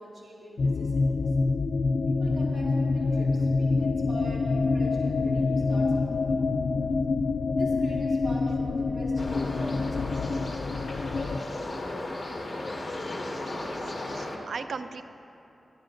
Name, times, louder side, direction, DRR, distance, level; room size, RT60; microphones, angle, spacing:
voice 1, 0.0-1.3 2.0-6.5 7.5-10.3, right 1 dB, 60° right, -5 dB, 2.5 m, -43 dB
sound 1, 0.6-11.4, left 3 dB, 75° left, 0.3 m, -26 dB
sound 2, 9.2-14.4, left 2 dB, 35° left, 1.2 m, -35 dB
voice 2, 13.5-13.8 14.2-15.0, right 5 dB, 80° right, 10 dB, 0.4 m, -38 dB
18.5 x 10.5 x 2.6 m, 2.9 s
wide cardioid pair, 90°, 0 cm